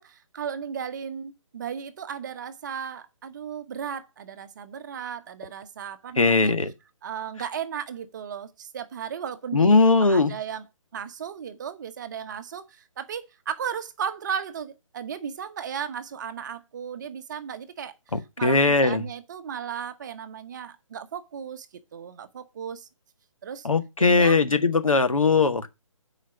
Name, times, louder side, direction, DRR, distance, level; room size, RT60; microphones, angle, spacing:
voice 1, 0.0-6.6 7.0-10.6 10.9-18.0 18.4-21.7 21.9-22.9 23.4-23.7 24.0-24.4, right 8 dB, 35° right, 1.0 m, -35 dB
voice 2, 6.2-6.7 9.5-10.3 18.1-19.0 23.6-25.7, left 3 dB, 75° left, 1.6 m, -20 dB
9.2 x 5.1 x 7.0 m
figure-of-eight pair, 145°, 17 cm